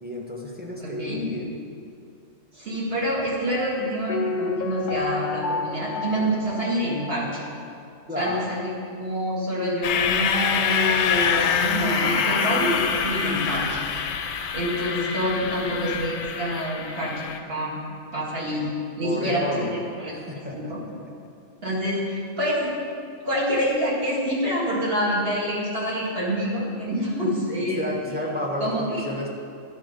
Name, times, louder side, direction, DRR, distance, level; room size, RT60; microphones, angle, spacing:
voice 1, 0.0-1.6 8.1-8.4 19.0-19.7 20.1-21.1 27.8-29.3, left 1 dB, 10° right, -2 dB, 0.8 m, -31 dB
voice 2, 0.8-1.2 2.5-7.4 8.2-13.8 14.5-17.8 18.1-18.7 19.0-20.1 20.5-20.8 21.6-22.7 23.2-27.8 28.6-29.1, equal, 50° right, -6 dB, 1.9 m, -27 dB
Piano, 4.1-7.9 8.1-8.2, left 4 dB, 85° left, 0.4 m, -31 dB
sound 1, 9.8-17.4, left 7 dB, 65° left, 0.7 m, -25 dB
11.0 x 4.2 x 5.1 m, 2.5 s
omnidirectional pair, 1.3 m